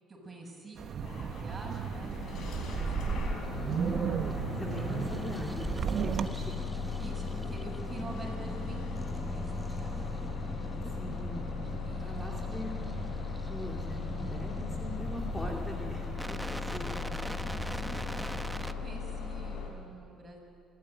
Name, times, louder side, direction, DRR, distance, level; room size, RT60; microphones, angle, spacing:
voice 1, 0.1-3.4 7.0-10.3 11.9-12.4 17.6-20.4, right 2 dB, 25° right, -1 dB, 7.5 m, -47 dB
Wind, 0.8-6.3, right 7 dB, 50° right, 1.1 m, -34 dB
Bus / Engine starting, 1.0-19.7, left 5 dB, 60° left, 4.2 m, -38 dB
sound 1, 3.4-18.7, right 1 dB, 5° right, 0.9 m, -40 dB
voice 2, 4.6-6.7 11.0-11.5 12.0-12.7 13.5-17.0, left 1 dB, 15° left, 0 dB, 2.5 m, -42 dB
25.5 x 13.0 x 9.3 m, 2.5 s
supercardioid pair, 80°, 0 cm